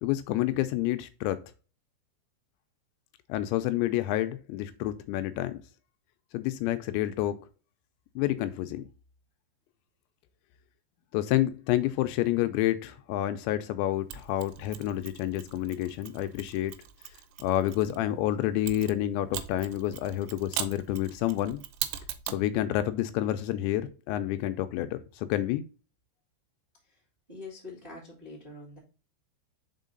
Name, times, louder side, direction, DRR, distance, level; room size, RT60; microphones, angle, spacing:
voice 1, 0.0-1.4 3.3-5.6 6.3-7.4 8.2-8.8 11.1-16.7 17.4-21.6 22.3-25.6, left 13 dB, 85° left, 2.7 m, -29 dB
Mechanisms, 14.1-18.0 18.7-22.5, right 11 dB, 85° right, 3.1 m, -40 dB
voice 2, 27.3-28.8, left 3 dB, 30° right, 1.0 m, -44 dB
5.7 x 4.5 x 3.8 m
omnidirectional pair, 5.3 m